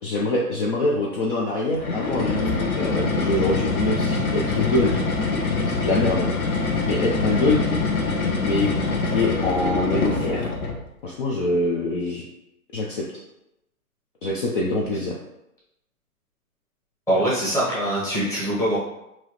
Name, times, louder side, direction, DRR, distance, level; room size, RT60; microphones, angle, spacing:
voice 1, 0.0-5.0 5.8-6.3 6.9-7.7 8.4-8.7 9.1-10.5 11.0-12.3 12.7-13.1 14.2-15.1, left 2 dB, 40° left, -3 dB, 0.6 m, -24 dB
sound 1, 1.7-10.8, left 3 dB, 80° left, 1.1 m, -24 dB
voice 2, 17.1-18.8, right 1 dB, 5° left, -9 dB, 1.2 m, -23 dB
4.6 x 2.9 x 3.0 m, 0.87 s
hypercardioid pair, 145°, 43 cm